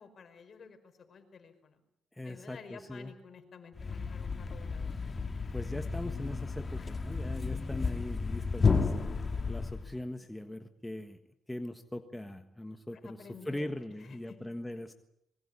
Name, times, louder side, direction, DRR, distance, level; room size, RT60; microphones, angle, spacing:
voice 1, 0.0-1.8 2.2-5.0 6.8-7.0 13.0-13.7 14.0-14.4, left 5 dB, 50° left, 7 dB, 5.2 m, -52 dB
voice 2, 2.1-3.1 5.5-11.2 11.5-14.9, left 1 dB, 10° left, 7 dB, 1.5 m, -41 dB
Thump thud, 3.7-10.0, left 4 dB, 35° left, 2.0 m, -32 dB
25.0 x 22.5 x 8.5 m, 0.79 s
cardioid pair, 90°, 0 cm